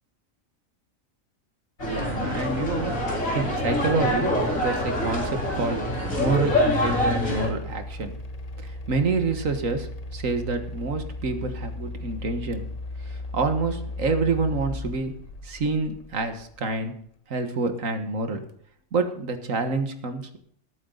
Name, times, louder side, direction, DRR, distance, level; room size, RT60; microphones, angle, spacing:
sound 1, 1.8-7.5, left 1 dB, 80° left, 4.3 m, -25 dB
voice 1, 1.8-4.3 4.5-5.8 6.2-8.2 8.6-12.7 13.3-15.1 15.4-16.9 17.3-18.4 18.9-20.4, right 3 dB, 75° right, 7 dB, 1.9 m, -27 dB
sound 2, 4.5-16.8, left 2 dB, 35° left, 0.8 m, -37 dB
19.5 x 9.1 x 4.0 m, 0.65 s
omnidirectional pair, 1.4 m